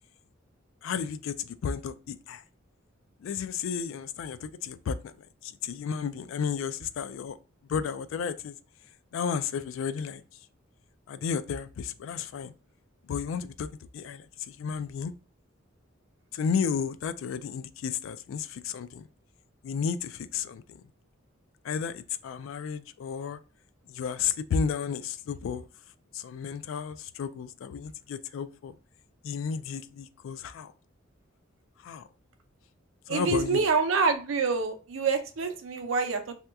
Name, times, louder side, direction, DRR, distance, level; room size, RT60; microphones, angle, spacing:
voice 1, 0.8-2.4 3.2-5.1 5.4-7.4 7.7-8.6 9.1-10.2 11.1-12.5 13.1-13.7 13.9-15.1 16.3-19.0 19.6-20.8 21.6-23.4 23.9-25.6 26.1-28.7 29.2-30.7 31.8-32.1 33.1-33.6, left 6 dB, 70° left, 0.3 m, -33 dB
voice 2, 33.1-36.3, right 4 dB, 70° right, 0.6 m, -26 dB
2.8 x 2.2 x 3.4 m
head